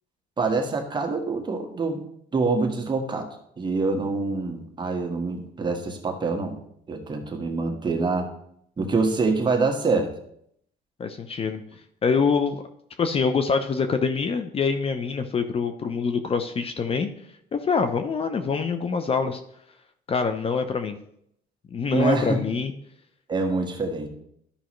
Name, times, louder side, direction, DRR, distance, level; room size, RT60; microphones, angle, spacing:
voice 1, 0.4-2.0 2.3-3.3 3.6-6.6 6.9-8.3 8.8-10.1 21.9-22.4 23.3-24.1, right 3 dB, 25° right, 2 dB, 1.5 m, -25 dB
voice 2, 11.0-11.6 12.0-12.6 13.0-17.1 17.5-19.4 20.1-21.0 21.7-22.7, left 5 dB, 35° left, 9 dB, 0.7 m, -25 dB
13.0 x 5.5 x 3.1 m, 0.71 s
cardioid pair, 110°, 17 cm